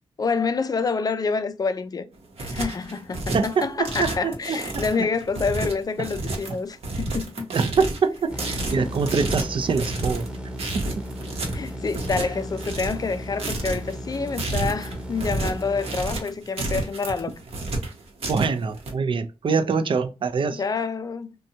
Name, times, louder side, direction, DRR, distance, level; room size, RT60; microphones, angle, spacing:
voice 1, 0.2-2.1 2.4-7.5 11.5-17.4 20.5-21.3, left 4 dB, 40° left, 0.4 m, -27 dB
sound 1, 2.1-18.9, right 2 dB, 75° right, 0.9 m, -31 dB
voice 2, 3.3-4.8 6.5-6.6 7.5-10.3 10.7-11.0 18.3-20.6, right 5 dB, 55° right, 0.4 m, -24 dB
sound 2, 8.3-16.0, equal, 10° right, 0.9 m, -35 dB
2.6 x 2.2 x 2.7 m
cardioid pair, 60°, 10 cm